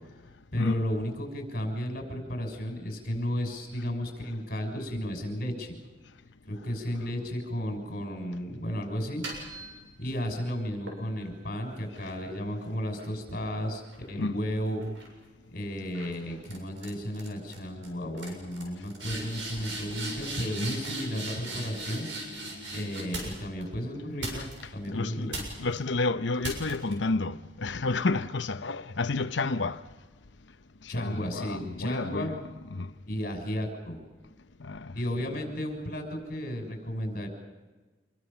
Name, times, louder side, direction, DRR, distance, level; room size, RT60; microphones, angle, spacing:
voice 1, 0.5-5.7 6.5-9.2 10.0-13.8 14.1-14.9 15.5-22.1 22.7-25.4 30.9-32.3 33.1-34.0 34.9-37.3, equal, 50° left, 6.2 m, -33 dB
sound 1, 9.0-10.3 10.9-14.4 14.8-15.2 15.9-16.2 16.4-16.9 17.1-17.6 17.8-17.9 18.2-23.6 24.2-24.9 25.3-25.8 26.4-26.9, right 1 dB, 80° right, 7.2 m, -39 dB
voice 2, 24.9-29.8 30.8-32.4 32.7-32.9 34.6-34.9, left 3 dB, 70° left, 0.9 m, -30 dB
27.0 x 22.0 x 7.0 m
head